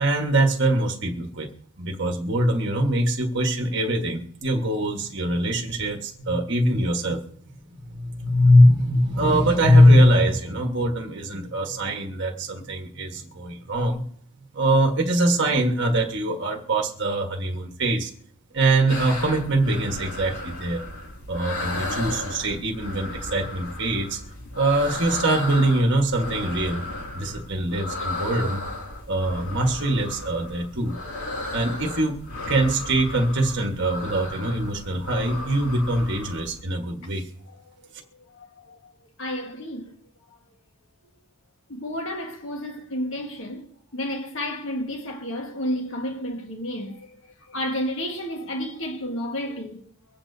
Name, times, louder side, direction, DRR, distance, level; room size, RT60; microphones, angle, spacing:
voice 1, 0.0-1.5 1.8-7.2 7.7-14.0 14.5-18.1 18.5-20.8 21.3-24.2 24.5-26.8 27.1-28.6 29.1-30.9 31.5-32.2 32.5-37.3, right 1 dB, 50° right, 1.4 m, -22 dB
sound 1, 18.9-36.6, left 2 dB, 80° left, 2.6 m, -35 dB
voice 2, 37.5-37.9 38.3-38.9 39.2-40.0 41.7-43.6 43.9-47.1 47.5-49.8, equal, 60° left, 1.6 m, -31 dB
24.5 x 8.6 x 2.7 m
head